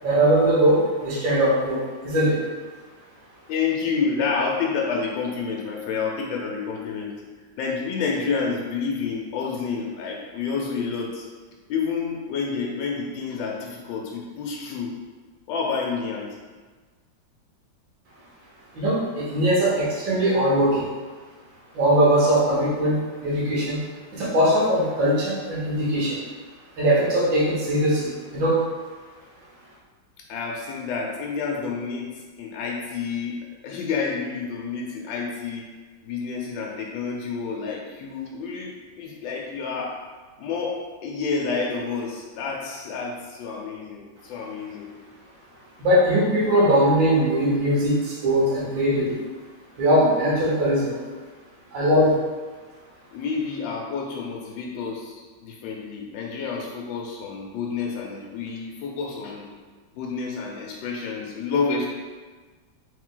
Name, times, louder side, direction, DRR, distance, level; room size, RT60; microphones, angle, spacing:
voice 1, 0.0-2.4 18.7-20.9 21.7-23.8 24.1-26.2 26.8-28.6 45.8-49.2 49.8-51.0 51.7-52.2, right 1 dB, 85° right, -6 dB, 1.8 m, -21 dB
voice 2, 3.5-7.2 7.6-11.3 11.7-14.9 15.5-16.4 30.3-32.1 32.4-33.4 33.6-35.6 36.0-40.0 40.4-44.9 53.1-59.5 59.9-61.9, left 5 dB, 80° left, -2 dB, 1.3 m, -29 dB
3.4 x 3.2 x 3.7 m, 1.4 s
omnidirectional pair, 2.0 m